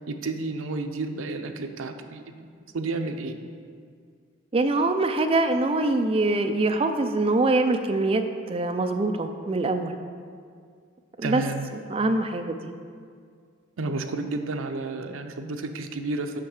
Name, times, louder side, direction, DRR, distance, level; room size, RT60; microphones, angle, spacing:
voice 1, 0.1-3.4 11.2-11.7 13.8-16.4, right 3 dB, 80° right, 6 dB, 0.6 m, -31 dB
voice 2, 4.5-8.2 8.5-10.0 11.2-11.4 11.7-12.6, right 2 dB, 25° right, 6 dB, 0.4 m, -24 dB
5.8 x 5.5 x 6.4 m, 2.1 s
head